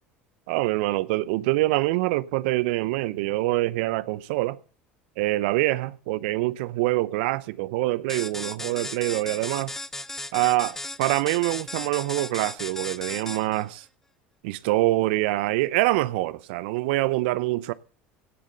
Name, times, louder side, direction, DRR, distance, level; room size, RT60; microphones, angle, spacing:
voice 1, 0.5-4.6 5.2-9.7 10.3-13.8 14.4-17.7, right 19 dB, 70° right, 0.7 m, -25 dB
sound 1, 8.1-13.6, left 1 dB, 5° left, 0.7 m, -36 dB
17.0 x 7.6 x 6.7 m
hypercardioid pair, 75°, 6 cm